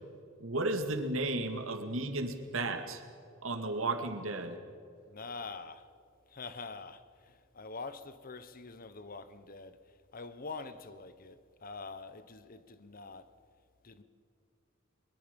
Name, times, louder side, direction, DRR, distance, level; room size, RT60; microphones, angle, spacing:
voice 1, 0.4-3.0 3.4-4.6, right 2 dB, 85° right, 2.1 m, -34 dB
voice 2, 5.1-5.9 6.3-9.8 10.1-13.3 13.8-14.0, left 4 dB, 45° left, 1.0 m, -45 dB
23.0 x 22.0 x 5.4 m
head